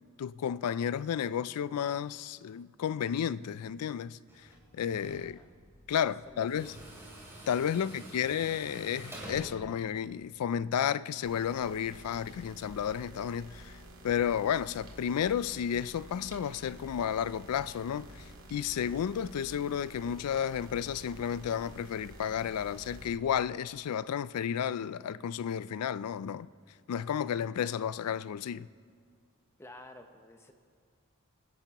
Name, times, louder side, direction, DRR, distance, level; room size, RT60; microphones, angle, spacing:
voice 1, 0.2-4.2 4.7-5.4 5.9-6.7 7.5-13.7 14.0-26.5 26.9-28.7, left 8 dB, 90° left, 0.3 m, -32 dB
Tools, 4.3-10.5, right 1 dB, 10° right, 2.8 m, -48 dB
voice 2, 5.2-5.5 6.2-6.8 7.7-8.2 29.6-30.5, left 1 dB, 10° left, 0.9 m, -52 dB
sound 1, 11.2-23.1, equal, 70° right, 1.8 m, -50 dB
26.0 x 10.5 x 3.0 m
head